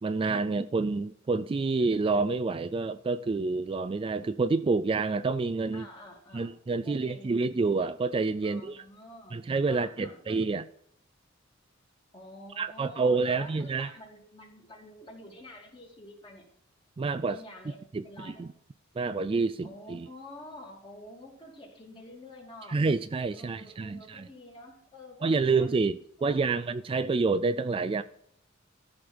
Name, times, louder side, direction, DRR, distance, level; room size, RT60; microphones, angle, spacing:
voice 1, 0.0-5.9 6.3-8.8 9.3-10.7 12.6-13.9 17.0-17.4 17.9-18.5 19.0-20.1 22.7-24.3 25.2-28.0, right 4 dB, 25° right, 0.3 m, -28 dB
voice 2, 5.7-7.3 8.4-9.4 9.7-10.5 12.1-16.5 17.3-18.4 19.6-22.8 23.3-25.7 26.2-26.7, left 1 dB, 25° left, 2.7 m, -48 dB
13.5 x 5.1 x 6.2 m
head